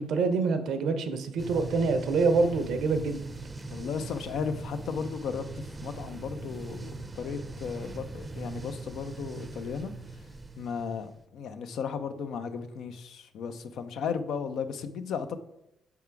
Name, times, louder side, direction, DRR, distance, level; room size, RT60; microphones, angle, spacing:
voice 1, 0.0-3.2, right 4 dB, 75° right, 9 dB, 0.6 m, -26 dB
sound 1, 1.4-11.2, right 2 dB, 25° right, 0.5 m, -41 dB
voice 2, 3.7-9.9 10.6-15.4, left 6 dB, 75° left, 9 dB, 0.5 m, -35 dB
5.8 x 3.5 x 4.5 m, 0.85 s
supercardioid pair, 65°, 0 cm